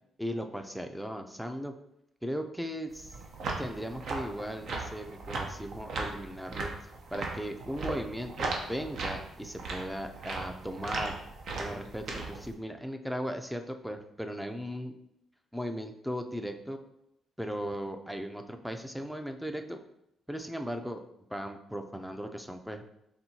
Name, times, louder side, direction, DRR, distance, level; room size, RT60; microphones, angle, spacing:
voice 1, 0.2-1.7 2.2-3.2 3.6-6.7 7.1-11.1 11.6-14.9 15.5-16.8 17.4-19.8 20.3-21.0 21.3-22.8, equal, ahead, 6 dB, 0.4 m, -37 dB
sound 1, 2.9-12.5, right 3 dB, 70° right, 0.7 m, -37 dB
4.4 x 3.4 x 2.8 m, 0.80 s
cardioid pair, 90°, 0 cm